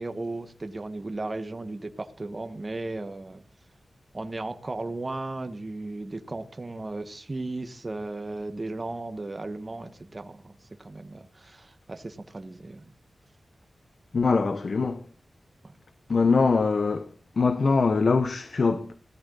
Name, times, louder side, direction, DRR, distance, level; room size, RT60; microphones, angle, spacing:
voice 1, 0.0-3.4 4.1-12.9 15.6-15.7, right 2 dB, 30° right, 1.4 m, -36 dB
voice 2, 14.1-15.0 16.1-17.1 17.4-19.0, left 4 dB, 50° left, 1.2 m, -23 dB
17.0 x 13.5 x 3.9 m
wide cardioid pair, 145°, 0 cm